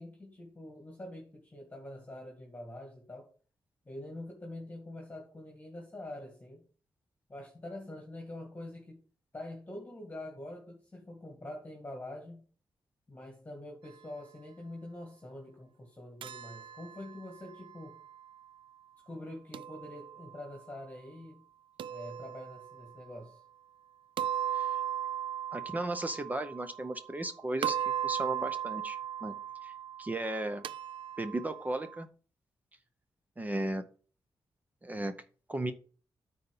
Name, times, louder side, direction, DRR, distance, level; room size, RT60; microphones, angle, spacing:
voice 1, 0.0-3.3 3.9-6.6 7.3-9.0 9.3-12.4 13.1-18.0 19.0-21.4 21.9-23.4, left 1 dB, 20° left, 0 dB, 2.1 m, -45 dB
sound 1, 16.2-18.3 19.5-20.5 21.8-23.0 24.2-27.3 27.6-32.0, right 10 dB, 80° right, 0.4 m, -38 dB
voice 2, 25.5-27.8 28.0-29.4 29.6-29.7 30.0-30.6 31.2-32.1 33.4-33.8 34.8-35.1 35.5-35.7, right 1 dB, 20° right, 10 dB, 0.6 m, -35 dB
9.3 x 4.2 x 5.4 m, 0.39 s
wide cardioid pair, 140°, 9 cm